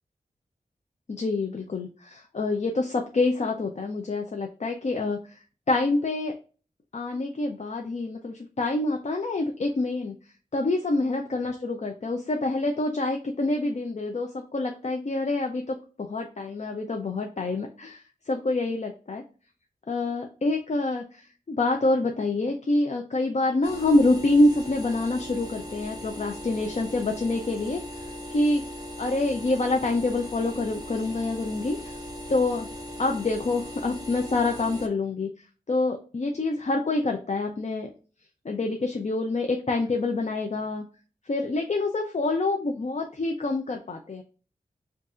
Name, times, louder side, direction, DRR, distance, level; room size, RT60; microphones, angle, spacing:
voice 1, 1.1-5.2 5.7-6.3 6.9-10.1 10.5-18.0 18.3-19.2 19.9-27.8 28.3-28.6 29.0-32.0 32.3-32.7 33.0-35.3 35.7-37.9 38.4-40.8 41.3-44.2, left 2 dB, 50° left, 2 dB, 0.6 m, -26 dB
sound 1, 23.6-34.9, left 1 dB, 25° right, 1.5 m, -39 dB
5.3 x 2.6 x 2.5 m, 0.36 s
wide cardioid pair, 65°, 15 cm